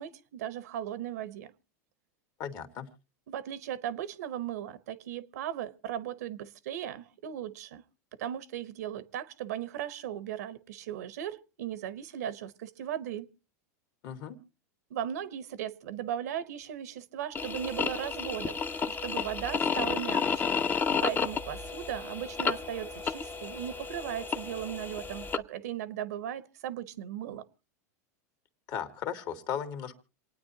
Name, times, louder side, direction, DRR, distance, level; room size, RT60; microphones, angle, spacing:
voice 1, 0.0-1.5 3.3-7.8 8.2-13.3 14.9-18.6 18.9-20.4 21.0-27.4, right 10 dB, 80° right, 0.9 m, -37 dB
voice 2, 2.4-2.9 14.0-14.4 28.7-30.0, left 8 dB, 50° left, 1.8 m, -36 dB
sound 1, 17.3-25.4, left 5 dB, 20° left, 0.7 m, -32 dB
27.5 x 9.4 x 2.8 m
hypercardioid pair, 110°, 9 cm